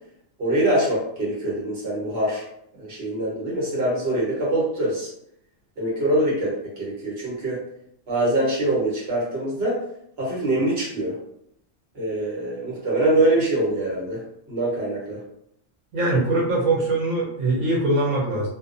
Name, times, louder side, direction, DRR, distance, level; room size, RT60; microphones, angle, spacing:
voice 1, 0.4-2.4 2.8-5.1 5.8-7.6 8.1-9.8 10.2-11.2 11.9-15.2, right 1 dB, 55° right, -5 dB, 1.3 m, -24 dB
voice 2, 15.9-18.5, right 2 dB, 75° right, -4 dB, 1.1 m, -22 dB
2.6 x 2.2 x 2.5 m, 0.72 s
omnidirectional pair, 1.3 m